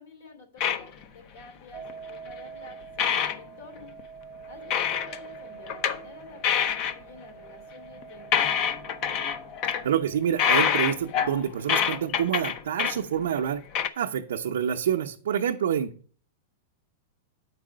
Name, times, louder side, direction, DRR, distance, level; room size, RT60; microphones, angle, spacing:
voice 1, 0.0-3.9 4.4-9.2, left 2 dB, 80° left, 5 dB, 2.9 m, -49 dB
sound 1, 0.6-1.0 1.8-2.3 2.7-2.8 3.0-3.4 3.8-4.0 4.7-5.3 5.7-6.0 6.4-6.9 8.0-8.1 8.3-9.8 10.4-13.0 13.4-13.5 13.7-13.9, left 8 dB, 40° left, 0.6 m, -25 dB
sound 2, 1.7-10.4, right 6 dB, 40° right, 0.6 m, -46 dB
voice 2, 9.8-13.6 14.0-15.9, right 9 dB, 85° right, 0 dB, 0.7 m, -27 dB
8.3 x 4.8 x 5.0 m, 0.43 s
supercardioid pair, 145°, 0 cm